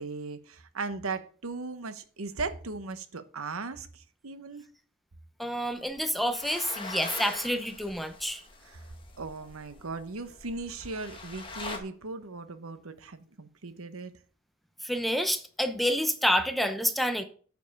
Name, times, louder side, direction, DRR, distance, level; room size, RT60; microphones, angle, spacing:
voice 1, 0.0-4.7 8.6-8.8 9.2-14.1, right 3 dB, 90° right, 1.0 m, -38 dB
voice 2, 5.4-8.4 14.8-17.2, equal, ahead, 0.8 m, -28 dB
sound 1, 5.7-11.8, left 3 dB, 25° left, 1.4 m, -43 dB
9.1 x 5.4 x 6.6 m
head